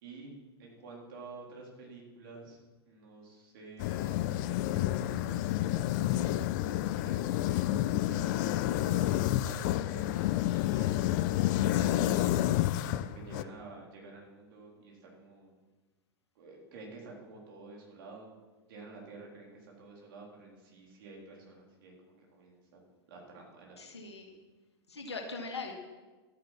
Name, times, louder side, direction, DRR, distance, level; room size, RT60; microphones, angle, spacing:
voice 1, 0.0-2.6 2.9-4.4 4.7-6.3 6.9-7.7 8.1-11.0 11.9-12.4 12.9-15.5 16.4-18.3 18.7-22.8 23.1-23.8, right 3 dB, 55° right, -1 dB, 4.1 m, -49 dB
sound 1, 3.8-13.4, left 14 dB, 45° left, 0.5 m, -29 dB
voice 2, 11.7-12.1 23.8-24.4 24.9-25.7, left 3 dB, 80° left, 2 dB, 2.3 m, -40 dB
12.0 x 9.6 x 6.1 m, 1.2 s
figure-of-eight pair, 100°, 14 cm